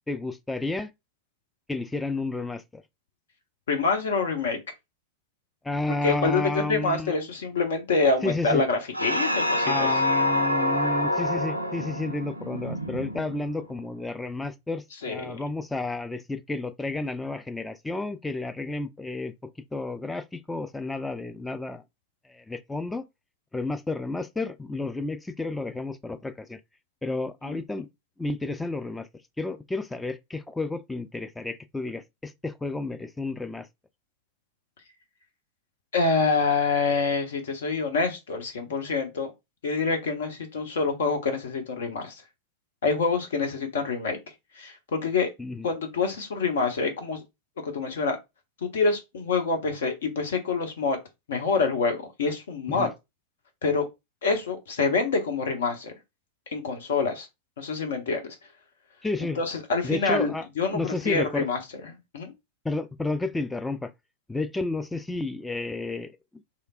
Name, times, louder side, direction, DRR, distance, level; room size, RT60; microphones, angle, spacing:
voice 1, 0.1-0.9 1.7-2.8 5.6-7.1 8.2-8.6 9.6-21.8 22.3-23.1 23.5-26.6 27.0-27.9 28.2-29.1 29.4-33.7 45.4-45.7 52.7-52.9 59.0-59.4 59.8-61.5 62.6-63.9 64.3-66.4, left 2 dB, 5° left, 0.3 m, -31 dB
voice 2, 3.7-4.6 6.0-9.9 15.0-15.4 27.4-27.6 35.9-39.3 39.6-42.2 42.8-44.2 44.6-45.3 45.6-47.2 47.6-48.2 48.6-51.0 51.3-52.9 53.6-53.8 54.2-55.9 56.5-57.3 57.6-58.2 59.4-60.3 60.6-61.6 61.9-62.3, left 4 dB, 60° left, 0.7 m, -26 dB
sound 1, 8.9-13.7, left 1 dB, 85° right, 0.4 m, -27 dB
3.2 x 2.9 x 2.3 m
figure-of-eight pair, 90°, 0 cm